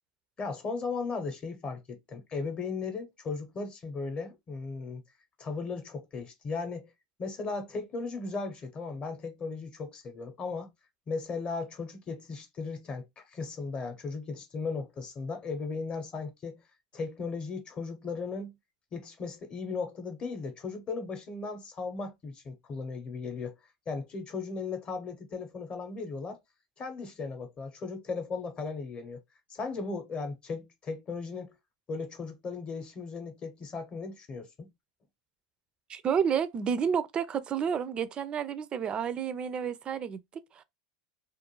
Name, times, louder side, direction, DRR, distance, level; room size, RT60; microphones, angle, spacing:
voice 1, 0.4-5.0 5.4-6.9 7.2-10.7 11.1-16.6 16.9-18.5 18.9-23.5 23.9-26.4 26.8-29.2 29.5-31.5 31.9-34.7, left 4 dB, 30° left, 0.8 m, -36 dB
voice 2, 35.9-40.6, right 7 dB, 30° right, 0.3 m, -30 dB
2.4 x 2.3 x 2.9 m
hypercardioid pair, 105°, 3 cm